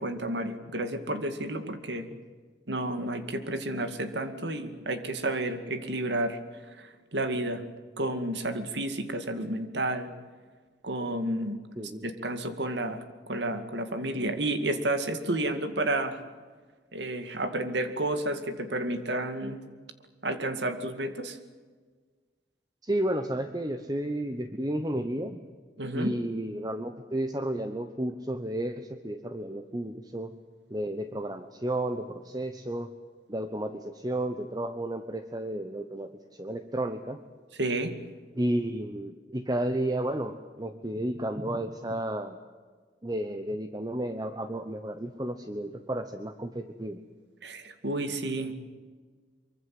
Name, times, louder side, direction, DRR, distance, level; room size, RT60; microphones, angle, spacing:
voice 1, 0.0-2.1 2.7-7.6 8.0-10.1 10.8-11.6 12.0-16.2 16.9-19.6 20.2-21.4 25.8-26.2 37.6-37.9 47.4-48.5, right 1 dB, 70° right, 9 dB, 2.3 m, -31 dB
voice 2, 11.8-12.1 22.8-25.5 25.9-30.3 30.7-32.9 33.3-37.2 38.3-42.4 43.0-47.0, right 1 dB, 20° right, 8 dB, 1.0 m, -32 dB
24.0 x 24.0 x 7.9 m, 1.5 s
head